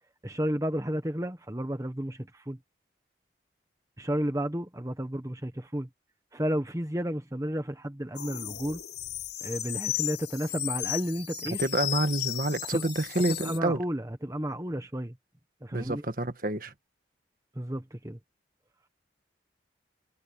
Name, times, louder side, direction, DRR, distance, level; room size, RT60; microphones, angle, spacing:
voice 1, 0.2-2.6 4.0-5.9 6.3-8.8 9.4-11.6 12.7-12.8 13.3-15.1 15.6-16.0 17.5-18.2, equal, 15° right, 1.2 m, -32 dB
sound 1, 8.2-13.6, left 14 dB, 75° left, 6.3 m, -35 dB
voice 2, 11.6-13.8 15.7-16.7, right 1 dB, 50° right, 1.6 m, -28 dB
head